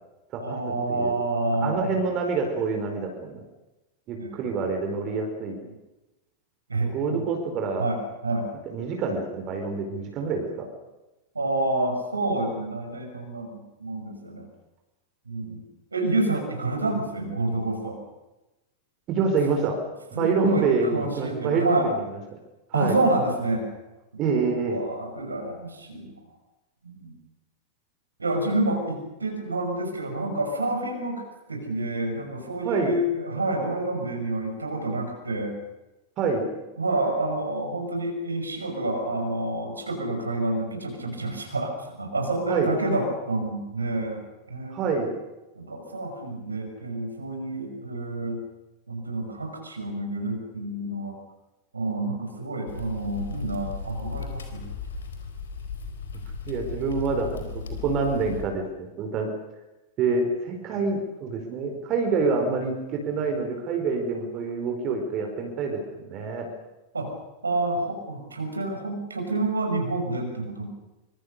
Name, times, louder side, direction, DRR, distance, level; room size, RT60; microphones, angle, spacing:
voice 1, 0.4-1.9 4.2-4.6 6.7-7.2 7.8-8.5 11.3-14.5 15.3-15.6 15.9-18.0 19.2-19.3 20.1-21.9 22.7-23.6 24.3-26.1 26.8-27.1 28.2-31.2 31.5-35.6 36.8-44.2 44.5-45.1 45.5-48.4 48.9-51.1 51.7-54.6 66.9-67.1 67.4-70.7, right 2 dB, 80° right, 3 dB, 5.9 m, -28 dB
voice 2, 1.6-3.4 4.1-5.6 6.8-7.9 8.7-10.6 19.1-19.8 20.2-22.0 22.7-23.0 24.2-24.8 32.6-33.0 36.2-36.5 42.5-42.7 44.7-45.1 56.5-58.6 59.0-59.3 60.0-66.5, right 4 dB, 35° right, 3 dB, 4.6 m, -26 dB
sound 1, 52.7-58.4, left 5 dB, 65° left, 4.4 m, -36 dB
25.0 x 25.0 x 6.7 m, 1.0 s
figure-of-eight pair, 90°, 0 cm